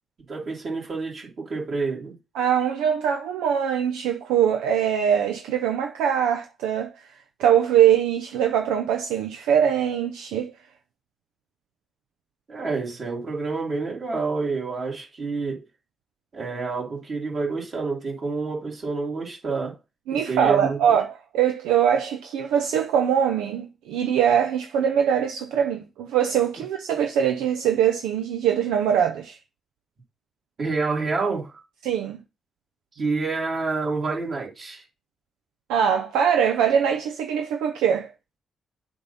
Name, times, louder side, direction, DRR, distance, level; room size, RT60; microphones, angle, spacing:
voice 1, 0.3-2.1 12.5-15.6 16.3-19.8 20.1-21.0 30.6-31.6 33.0-34.8, right 4 dB, 50° right, 2.7 m, -28 dB
voice 2, 2.3-6.9 7.4-10.5 20.1-29.4 31.8-32.2 35.7-38.1, right 8 dB, 85° right, 0.5 m, -22 dB
7.7 x 2.8 x 5.5 m
supercardioid pair, 50°, 0 cm